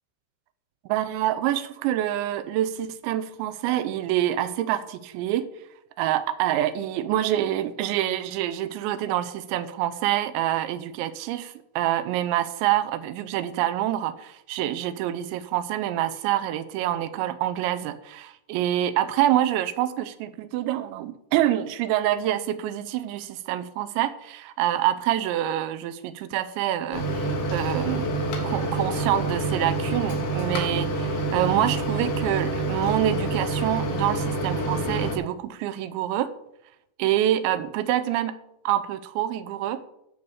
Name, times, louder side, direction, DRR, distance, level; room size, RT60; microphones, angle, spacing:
voice 1, 0.9-5.5 6.0-28.1 28.4-36.3 37.0-38.4 38.7-39.8, right 12 dB, 85° right, 12 dB, 3.0 m, -26 dB
Microwave oven, 26.9-35.2, right 2 dB, 80° left, 4.3 m, -27 dB
13.5 x 7.1 x 4.9 m, 0.80 s
omnidirectional pair, 5.2 m